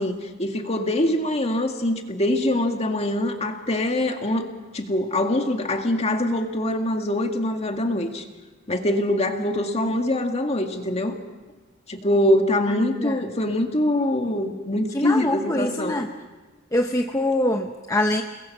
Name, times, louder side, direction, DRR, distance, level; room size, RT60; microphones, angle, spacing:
voice 1, 0.0-4.5 4.7-8.2 8.7-11.1 11.9-16.0, left 1 dB, 35° left, 4 dB, 2.0 m, -24 dB
voice 2, 14.9-16.1 16.7-18.2, left 1 dB, 15° left, 4 dB, 0.9 m, -24 dB
30.0 x 20.5 x 6.1 m, 1.2 s
head